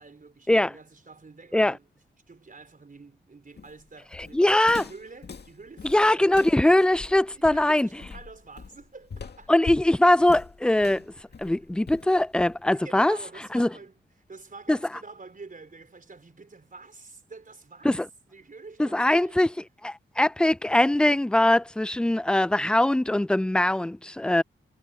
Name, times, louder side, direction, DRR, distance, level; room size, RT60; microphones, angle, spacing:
voice 1, 0.0-1.9 2.3-6.8 7.3-9.5 11.1-11.4 12.7-14.0 14.3-17.9 18.3-19.4, right 4 dB, 45° right, 4.5 m, -47 dB
Walk footsteps, 3.6-12.8, left 5 dB, 55° left, 2.0 m, -42 dB
voice 2, 4.3-4.8 5.8-7.9 9.5-11.0 11.4-13.2 13.5-13.7 14.7-14.8 17.8-18.1 18.8-19.5 19.8-24.4, left 1 dB, 5° left, 0.3 m, -21 dB
cardioid pair, 65°, 20 cm